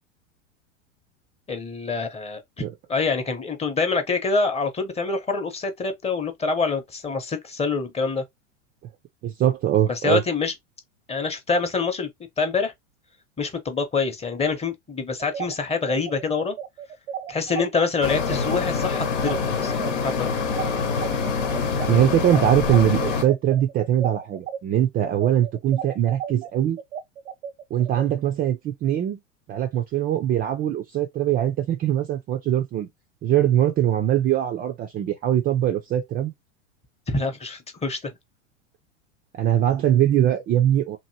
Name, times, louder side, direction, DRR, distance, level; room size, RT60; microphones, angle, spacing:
voice 1, 1.5-2.6 2.9-8.2 9.9-10.5 11.1-12.1 12.4-12.7 13.4-16.6 17.3-20.3 37.1-38.1, left 4 dB, 15° left, 0.8 m, -26 dB
voice 2, 9.2-10.2 21.9-26.8 27.7-29.2 29.5-32.9 33.2-36.3 39.3-41.0, right 11 dB, 25° right, 0.4 m, -22 dB
sound 1, 15.2-24.6 25.0-28.1, right 8 dB, 85° right, 0.5 m, -34 dB
sound 2, 18.0-23.2, left 5 dB, 80° left, 1.0 m, -25 dB
3.0 x 2.6 x 2.7 m
hypercardioid pair, 95°, 37 cm